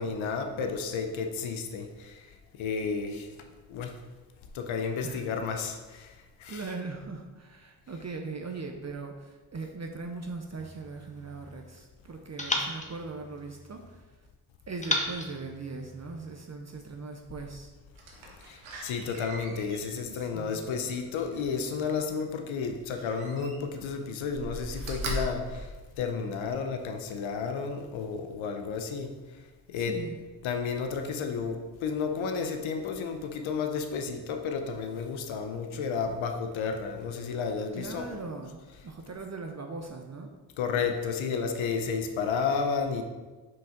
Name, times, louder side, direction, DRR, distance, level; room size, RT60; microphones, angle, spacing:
voice 1, 0.0-2.2 2.6-3.3 3.7-3.9 4.5-6.1 6.4-6.6 18.5-25.7 26.0-29.1 29.7-30.0 30.4-38.2 40.6-43.0, left 5 dB, 85° left, 5 dB, 0.8 m, -32 dB
voice 2, 6.5-14.2 14.7-17.7 20.1-20.9 29.7-30.2 37.7-40.3, right 3 dB, 35° right, 3 dB, 0.8 m, -40 dB
sound 1, 10.6-11.8 12.4-14.0 14.8-16.4, left 1 dB, 15° left, 1.2 m, -35 dB
Slam, 18.0-21.8 22.9-23.9 24.2-26.5 27.0-27.1, right 1 dB, 90° right, 1.2 m, -40 dB
6.1 x 5.1 x 3.8 m, 1.3 s
supercardioid pair, 50°, 46 cm